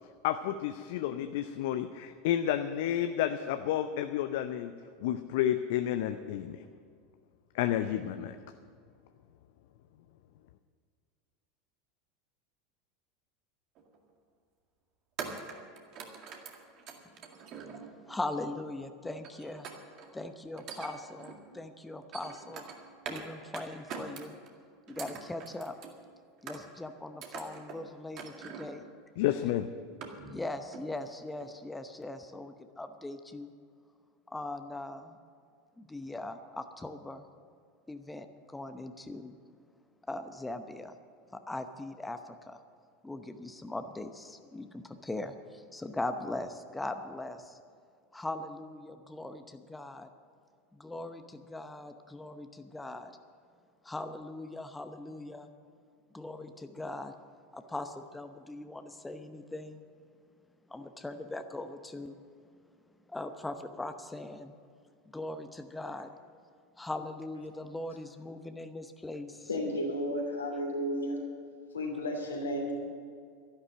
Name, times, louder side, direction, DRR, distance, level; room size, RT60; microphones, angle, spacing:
voice 1, 0.2-4.7 5.0-6.6 7.5-8.4 29.2-29.7, left 11 dB, 60° left, 10 dB, 0.5 m, -30 dB
sound 1, 13.8-14.0 15.2-18.1 19.2-20.1 20.5-21.4 21.9-23.3 23.5-24.5 24.9-26.0 26.5-26.9 27.2-27.8 28.2-28.8 29.3-29.4 29.7-30.5 30.7-31.0 31.4-31.5, right 6 dB, 45° right, 2.0 m, -44 dB
voice 2, 17.8-19.7 20.1-22.6 23.1-24.3 24.9-25.7 26.4-28.9 30.3-33.5 34.3-35.2 35.8-37.3 37.9-39.4 40.1-41.0 41.3-42.6 43.0-47.6 48.1-50.1 50.7-53.1 53.8-55.5 56.1-57.1 57.5-59.8 60.7-62.2 63.1-64.5 65.1-66.1 66.8-69.5, left 2 dB, 10° left, 8 dB, 0.8 m, -40 dB
voice 3, 69.5-71.4 71.7-72.8, equal, 80° left, 1 dB, 2.9 m, -33 dB
12.5 x 11.5 x 7.5 m, 2.2 s
figure-of-eight pair, 80°, 0 cm